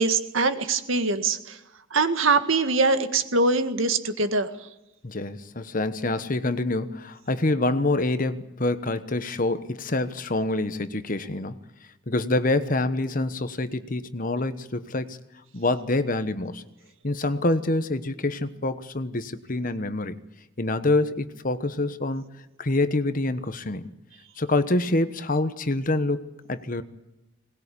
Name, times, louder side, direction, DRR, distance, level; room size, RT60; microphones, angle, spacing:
voice 1, 0.0-1.6 1.9-4.7, right 3 dB, 75° right, 9 dB, 1.9 m, -23 dB
voice 2, 5.0-11.5 12.1-15.2 15.5-16.6 17.0-20.2 20.6-22.2 22.6-23.9 24.4-26.2 26.5-26.8, left 2 dB, 40° left, 12 dB, 1.1 m, -26 dB
21.5 x 20.0 x 8.5 m, 0.93 s
head